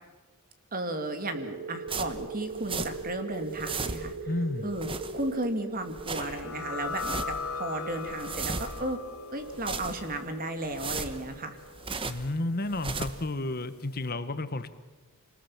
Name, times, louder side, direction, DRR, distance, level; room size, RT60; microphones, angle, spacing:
voice 1, 0.7-4.1 4.6-9.0 9.3-11.6, right 1 dB, 40° right, 7 dB, 2.4 m, -34 dB
sound 1, 1.3-9.6, right 3 dB, 60° right, 2.0 m, -41 dB
sound 2, 1.9-3.2 3.4-4.3 4.6-5.5 5.8-6.4 6.8-7.5 7.9-9.0 9.4-10.2 10.6-12.3 12.7-13.3, right 4 dB, 25° right, 1.1 m, -37 dB
voice 2, 4.2-4.7 12.0-14.7, left 2 dB, 45° left, 12 dB, 1.1 m, -31 dB
sound 3, 6.2-13.4, left 4 dB, 70° left, 1.5 m, -40 dB
26.5 x 20.0 x 7.3 m, 1.2 s
head